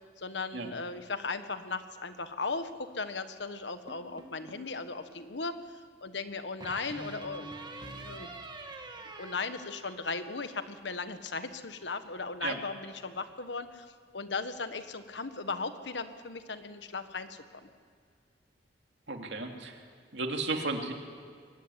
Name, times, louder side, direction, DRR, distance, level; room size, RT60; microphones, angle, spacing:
voice 1, 0.2-7.5 8.0-8.3 9.2-13.9 14.1-17.7, left 4 dB, 75° left, 10 dB, 1.4 m, -37 dB
sound 1, 3.9-4.8 6.6-10.4, right 2 dB, 25° right, 1.9 m, -45 dB
voice 2, 19.1-19.8 20.1-20.9, right 3 dB, 70° right, 3 dB, 2.7 m, -33 dB
22.5 x 16.0 x 9.9 m, 2.1 s
head